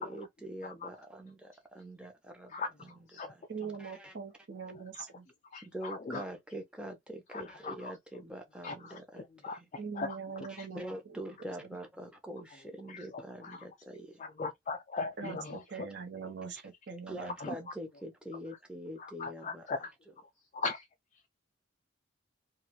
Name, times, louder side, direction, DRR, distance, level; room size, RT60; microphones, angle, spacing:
voice 1, 0.0-2.5 2.8-2.9 3.3-4.2 5.6-9.2 9.6-9.7 10.5-14.3 17.1-19.6, right 1 dB, 5° right, 0.6 m, -44 dB
voice 2, 2.5-3.3 4.7-5.1 5.5-6.2 7.3-8.0 8.6-9.6 9.9-10.7 12.9-13.7 14.2-15.6 17.4-17.5 18.3-18.4 19.0-19.9 20.4-20.9 21.1-21.2, left 4 dB, 35° left, 0.3 m, -40 dB
voice 3, 3.5-5.3 9.8-11.2 11.6-11.8 15.2-17.3 17.6-17.7, right 5 dB, 55° right, 0.7 m, -42 dB
2.5 x 2.3 x 3.0 m
head